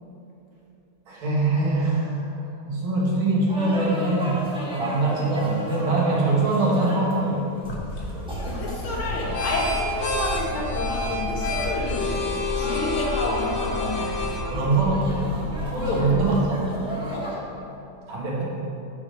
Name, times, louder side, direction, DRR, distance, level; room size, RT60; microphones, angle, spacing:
voice 1, 1.1-2.3 2.7-7.5 14.5-15.4 15.7-16.6 18.1-18.4, right 2 dB, 75° right, -4 dB, 2.1 m, -23 dB
sound 1, 3.5-17.4, equal, 5° right, 0.3 m, -36 dB
sound 2, 7.6-16.5, left 2 dB, 55° left, 0.7 m, -29 dB
voice 2, 8.4-12.2 12.5-14.2 15.8-16.4 17.1-17.4, left 1 dB, 75° left, -3 dB, 2.1 m, -29 dB
6.1 x 4.8 x 6.2 m, 2.9 s
omnidirectional pair, 2.3 m